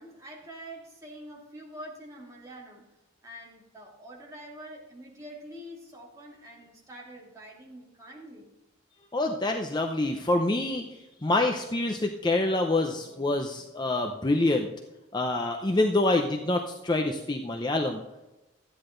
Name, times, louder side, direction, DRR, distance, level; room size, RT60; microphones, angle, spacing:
voice 1, 0.0-2.8 3.2-8.5, equal, 15° right, -3 dB, 2.7 m, -45 dB
voice 2, 9.1-14.7 15.1-18.0, left 2 dB, 20° left, 3 dB, 0.6 m, -26 dB
13.0 x 9.8 x 3.9 m, 1.0 s
head